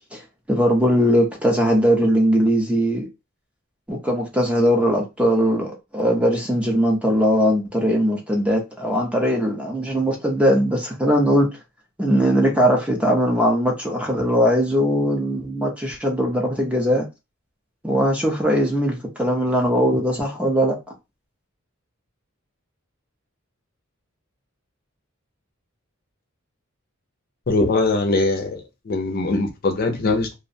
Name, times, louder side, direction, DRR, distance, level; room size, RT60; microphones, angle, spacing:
voice 1, 0.5-3.1 3.9-11.5 12.0-17.0 17.8-20.8, equal, 5° right, 0.5 m, -20 dB
voice 2, 27.5-28.6 28.9-30.3, left 2 dB, 45° left, 0.5 m, -21 dB
2.4 x 2.1 x 2.6 m
head